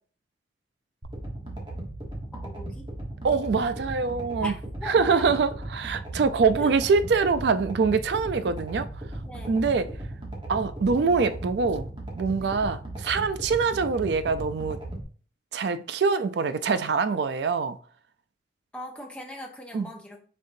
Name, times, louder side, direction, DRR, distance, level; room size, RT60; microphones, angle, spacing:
sound 1, 1.0-15.0, right 1 dB, 25° right, 1.2 m, -37 dB
voice 1, 2.3-2.9 4.4-4.5 4.8-5.4 6.6-6.7 9.2-9.5 12.4-12.5 18.7-20.2, left 1 dB, 5° left, 0.9 m, -39 dB
voice 2, 3.2-4.5 4.8-8.9 9.5-9.9 10.5-14.8 15.5-17.8 19.7-19.9, right 5 dB, 75° right, 0.4 m, -24 dB
5.3 x 3.7 x 2.6 m
head